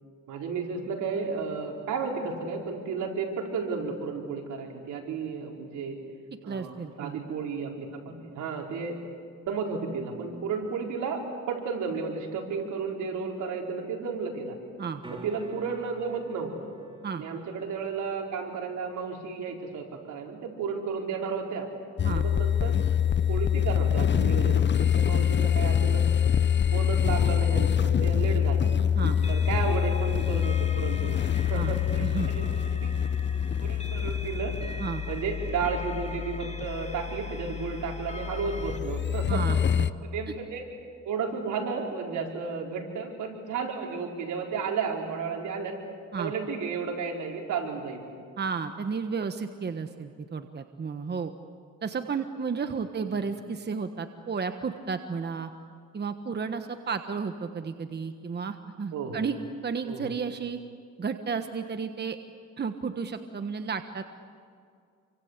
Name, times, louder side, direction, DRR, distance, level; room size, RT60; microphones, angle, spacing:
voice 1, 0.3-6.0 6.4-9.0 9.5-11.2 11.5-14.6 15.1-16.7 17.2-21.7 22.0-22.8 23.3-26.1 26.7-28.7 29.2-32.9 33.6-34.6 35.1-39.4 40.0-40.6 41.0-45.8 46.2-48.0 58.9-59.2 59.8-60.2, right 5 dB, 80° right, 0 dB, 4.8 m, -33 dB
voice 2, 6.5-7.2 14.8-15.0 17.0-17.2 22.0-22.2 28.9-29.2 31.5-31.7 32.0-32.3 34.8-35.0 39.3-39.9 40.3-40.4 46.1-46.3 48.4-51.3 51.8-55.5 55.9-59.4 59.6-60.6 61.0-62.2 62.6-64.0, right 5 dB, 35° right, 8 dB, 1.4 m, -32 dB
sound 1, 15.0-21.0 25.7-25.8, right 1 dB, 15° right, 5.0 m, -51 dB
sound 2, 22.0-39.9, left 8 dB, 40° left, 0.9 m, -26 dB
sound 3, 29.2-38.8, left 1 dB, 20° left, 1.8 m, -44 dB
28.5 x 25.0 x 8.3 m, 2.2 s
cardioid pair, 90°, 30 cm